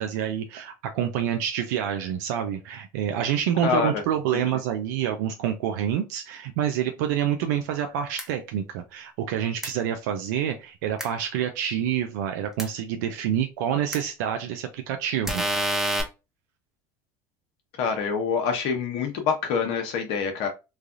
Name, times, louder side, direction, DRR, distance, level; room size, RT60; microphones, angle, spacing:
voice 1, 0.0-16.0, right 9 dB, 80° right, 0.4 m, -27 dB
voice 2, 3.6-4.0 4.3-4.4 17.8-20.5, left 6 dB, 70° left, 0.9 m, -26 dB
sound 1, 8.2-8.3 9.6-9.7 11.0-11.1 12.6-12.7 13.9-14.0 15.3-16.0, right 1 dB, 5° right, 0.9 m, -26 dB
3.2 x 2.3 x 2.5 m
hypercardioid pair, 75°, 9 cm